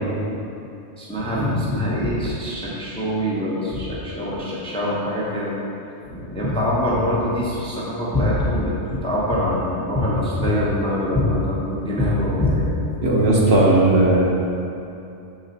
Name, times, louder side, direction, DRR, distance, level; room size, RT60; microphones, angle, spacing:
voice 1, 1.0-5.6 6.1-12.8, left 1 dB, 5° left, -6 dB, 0.6 m, -23 dB
voice 2, 13.0-14.2, right 2 dB, 60° right, -4 dB, 1.1 m, -16 dB
6.2 x 3.9 x 4.0 m, 2.7 s
omnidirectional pair, 1.3 m